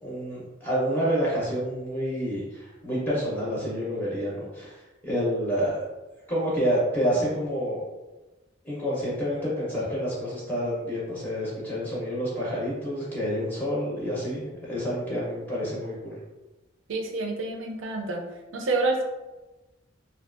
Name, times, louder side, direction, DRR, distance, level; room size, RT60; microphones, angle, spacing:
voice 1, 0.0-5.8 6.3-7.8 8.6-16.2, equal, 10° left, -8 dB, 0.5 m, -28 dB
voice 2, 16.9-18.2 18.5-19.0, right 2 dB, 85° right, 1 dB, 0.5 m, -27 dB
2.5 x 2.2 x 2.4 m, 1.1 s
head